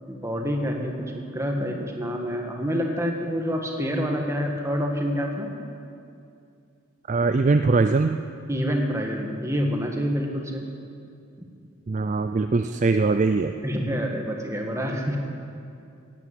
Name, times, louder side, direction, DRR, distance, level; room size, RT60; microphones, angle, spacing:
voice 1, 0.1-5.5 8.5-10.6 13.6-15.2, equal, 15° right, 1 dB, 1.5 m, -27 dB
voice 2, 7.1-8.2 11.9-13.5, right 3 dB, 35° right, 8 dB, 0.4 m, -21 dB
17.0 x 9.1 x 7.9 m, 2.5 s
head